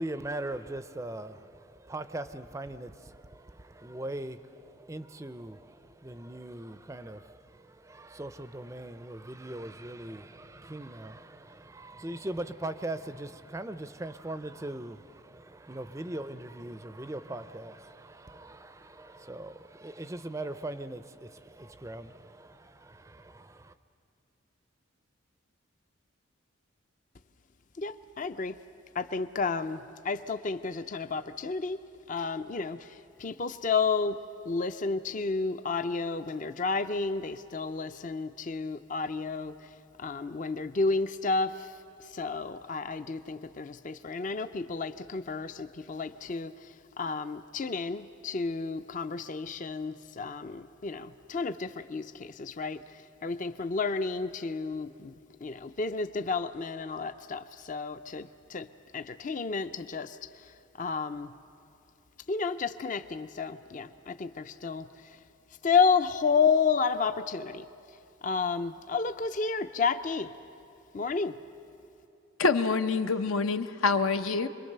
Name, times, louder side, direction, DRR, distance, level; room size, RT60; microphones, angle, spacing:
voice 1, 0.0-23.7, right 1 dB, 15° right, 12 dB, 0.4 m, -40 dB
voice 2, 27.8-28.6 28.9-31.8 32.1-34.2 34.5-39.7 40.0-41.7 42.1-55.1 55.4-61.3 62.3-65.2 65.6-67.7 68.2-70.3 70.9-71.4, left 4 dB, 40° left, 11 dB, 0.5 m, -31 dB
voice 3, 72.4-74.5, left 4 dB, 80° left, 9 dB, 0.8 m, -26 dB
27.5 x 22.0 x 6.7 m, 2.6 s
head